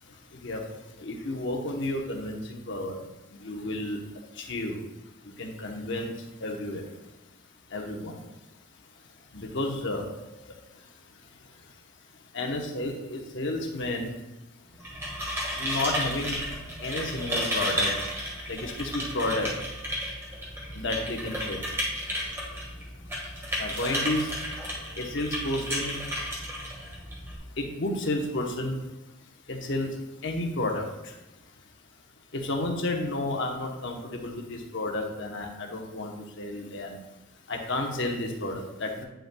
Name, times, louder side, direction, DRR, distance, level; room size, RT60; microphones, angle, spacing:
voice 1, 1.0-3.0 3.4-4.0 4.4-4.8 5.4-6.1 6.4-6.8 7.7-8.2 9.3-10.1 12.3-14.1 15.6-16.4 16.8-17.9 18.5-19.5 20.8-21.6 23.6-24.3 25.0-26.0 27.6-28.8 29.5-29.9 30.2-30.9 32.3-37.0 37.5-39.0, left 2 dB, 55° left, 2 dB, 0.9 m, -31 dB
sound 1, 14.7-27.4, equal, 10° right, 1.5 m, -33 dB
8.8 x 5.4 x 2.2 m, 1.0 s
head